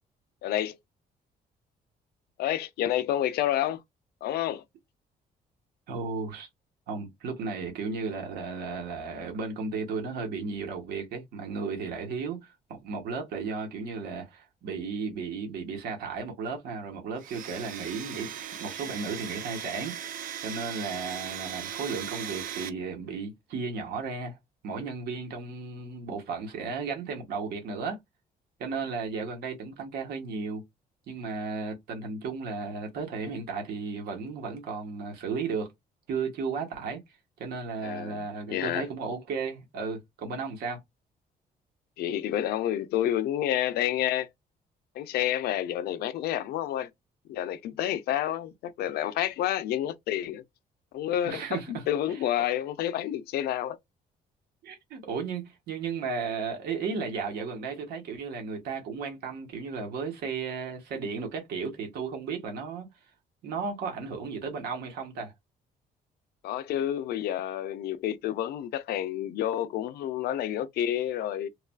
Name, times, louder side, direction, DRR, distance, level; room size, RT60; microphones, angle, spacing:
voice 1, 0.4-0.8 2.4-3.8 4.2-4.6 37.8-38.9 42.0-44.3 44.9-46.9 47.3-50.4 50.9-53.8 66.4-71.5, left 11 dB, 85° left, 0.5 m, -29 dB
voice 2, 5.9-6.5 6.9-24.4 24.6-28.0 28.6-30.6 31.1-35.7 36.1-37.0 37.4-40.8 51.2-51.8 52.1-52.2 54.6-62.9 63.4-65.3, right 5 dB, 85° right, 1.1 m, -34 dB
Domestic sounds home sounds, 17.2-22.7, right 9 dB, 60° right, 0.5 m, -38 dB
3.1 x 2.4 x 2.2 m
cardioid pair, 155°, 16 cm